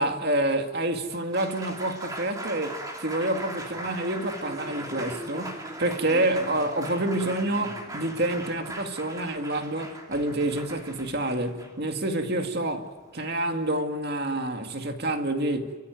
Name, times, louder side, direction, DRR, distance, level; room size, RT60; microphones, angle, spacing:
voice 1, 0.0-15.8, right 1 dB, 50° right, 2.1 m, -28 dB
Applause, 1.1-13.2, right 1 dB, 15° right, 2.9 m, -39 dB
29.5 x 14.5 x 9.3 m
head